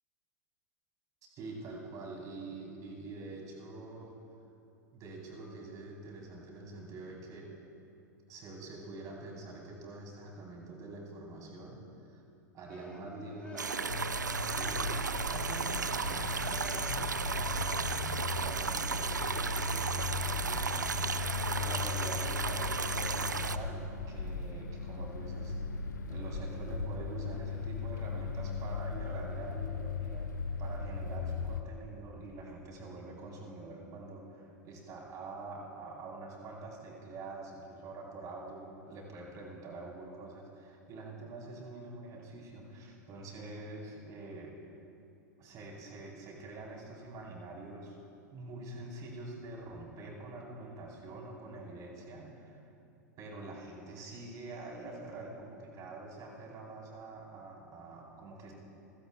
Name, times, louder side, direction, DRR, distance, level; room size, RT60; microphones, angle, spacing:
voice 1, 1.4-4.2 4.9-7.6 8.3-12.2 12.5-14.0 14.4-15.0 15.3-25.5 26.1-30.3 30.6-44.8 45.4-48.0 48.3-52.7 53.2-58.5, right 2 dB, 35° right, -2 dB, 3.7 m, -46 dB
sound 1, 12.7-17.1 17.5-17.8, left 2 dB, 15° left, 3.1 m, -50 dB
sound 2, 13.6-23.6, right 5 dB, 85° right, 0.4 m, -34 dB
sound 3, 13.9-31.6, left 4 dB, 80° left, 0.6 m, -37 dB
27.5 x 16.0 x 2.3 m, 2.7 s
figure-of-eight pair, 90°, 10 cm